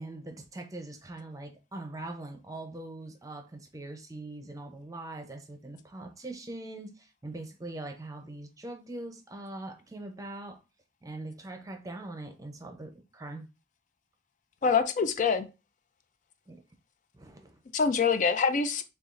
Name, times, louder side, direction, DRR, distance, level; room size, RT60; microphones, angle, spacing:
voice 1, 0.0-10.6 11.0-13.5 16.5-16.6 17.1-17.6, right 2 dB, 20° right, 0.6 m, -42 dB
voice 2, 14.6-15.5 17.7-18.8, left 5 dB, 45° left, 0.4 m, -25 dB
6.8 x 2.4 x 2.5 m
head